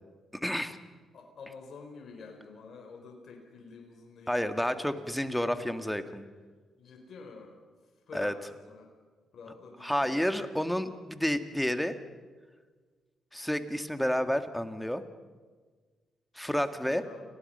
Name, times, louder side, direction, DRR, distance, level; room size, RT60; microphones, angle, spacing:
voice 1, 0.3-0.8 4.3-6.3 8.1-8.3 9.8-12.0 13.3-15.0 16.3-17.0, equal, 5° left, 8 dB, 1.9 m, -30 dB
voice 2, 1.1-5.1 6.8-7.6 8.1-8.4 8.6-8.9 9.3-10.3 16.9-17.2, left 4 dB, 65° left, 2 dB, 4.0 m, -48 dB
29.5 x 18.5 x 5.6 m, 1.4 s
supercardioid pair, 55°, 0 cm